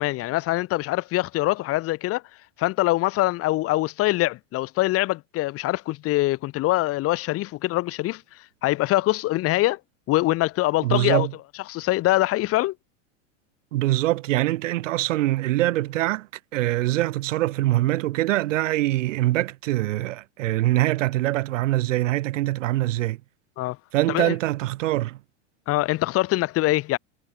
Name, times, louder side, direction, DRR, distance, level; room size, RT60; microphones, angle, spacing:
voice 1, 0.0-2.2 2.6-8.2 8.6-9.8 10.1-11.3 11.7-12.7 23.6-23.8 24.1-24.3 25.7-27.0, left 17 dB, 35° left, 1.8 m, -23 dB
voice 2, 10.8-11.3 13.7-23.2 23.9-25.2, right 16 dB, 75° right, 2.7 m, -23 dB
supercardioid pair, 135°, 38 cm